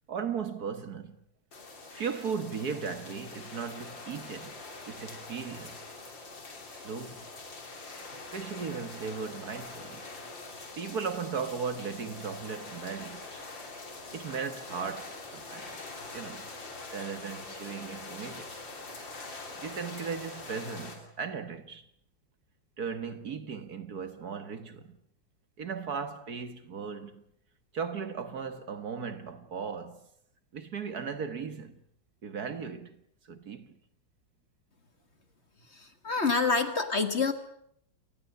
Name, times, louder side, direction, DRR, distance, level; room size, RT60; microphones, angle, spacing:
voice 1, 0.1-1.2 1.9-4.5 4.9-5.8 6.7-7.3 8.1-10.0 10.8-13.5 14.1-15.7 16.1-16.5 16.9-18.6 19.6-21.8 22.8-25.0 25.6-27.2 27.7-30.1 30.5-31.8 32.2-33.0 33.3-33.7, right 6 dB, 55° right, 1.9 m, -37 dB
sound 1, 1.5-21.0, left 3 dB, 80° left, 4.1 m, -44 dB
voice 2, 35.7-37.3, left 4 dB, 35° left, 2.0 m, -27 dB
28.5 x 19.5 x 6.9 m
omnidirectional pair, 2.0 m